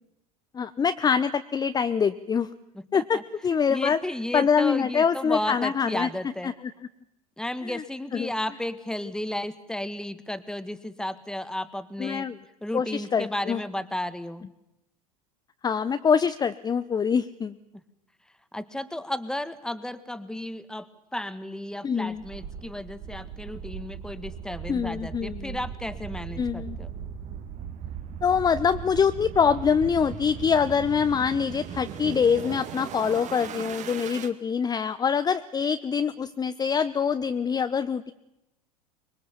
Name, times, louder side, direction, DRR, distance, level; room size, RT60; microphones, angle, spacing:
voice 1, 0.5-2.5 2.9-4.0 4.3-6.1 6.4-6.5 7.6-7.8 8.1-8.3 12.0-12.4 12.7-13.6 15.6-17.6 21.8-22.2 24.7-25.6 26.4-26.8 28.2-38.1, left 6 dB, 20° left, 12 dB, 0.9 m, -24 dB
voice 2, 3.7-6.5 7.4-12.3 12.6-14.4 18.5-26.9, left 1 dB, 5° left, 14 dB, 1.7 m, -33 dB
sound 1, 22.1-34.3, right 8 dB, 35° right, 2.2 m, -38 dB
25.0 x 23.0 x 7.1 m, 0.88 s
figure-of-eight pair, 75°, 20 cm